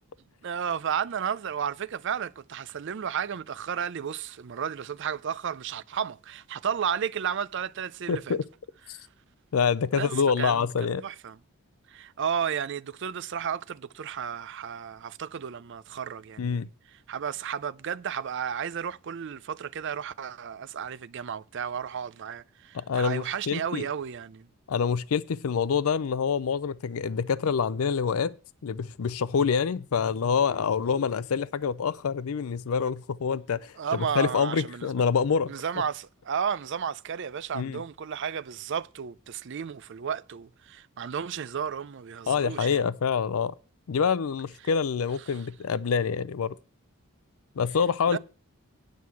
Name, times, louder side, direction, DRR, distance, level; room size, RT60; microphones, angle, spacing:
voice 1, 0.4-8.4 8.9-9.0 9.9-10.1 10.4-10.7 11.0-11.4 11.9-24.5 33.8-34.9 35.5-42.8 45.3-45.4 48.1-48.2, right 7 dB, 55° right, 0.4 m, -33 dB
voice 2, 8.1-8.4 8.9-9.0 9.5-11.0 16.4-16.7 22.7-23.9 24.7-28.3 28.6-35.5 37.5-37.8 42.3-43.5 43.9-46.5 47.6-48.2, left 6 dB, 70° left, 0.4 m, -26 dB
9.5 x 6.2 x 7.0 m
head